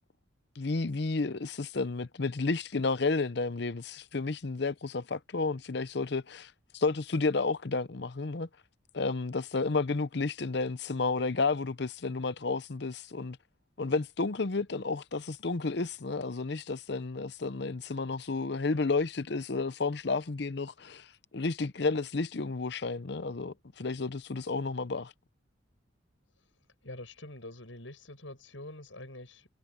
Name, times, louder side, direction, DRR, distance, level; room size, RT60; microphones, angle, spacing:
voice 1, 0.6-8.5 8.9-13.4 13.8-21.1 21.3-25.1, left 3 dB, 60° left, 0.7 m, -31 dB
voice 2, 26.8-29.5, left 1 dB, 80° left, 7.8 m, -45 dB
head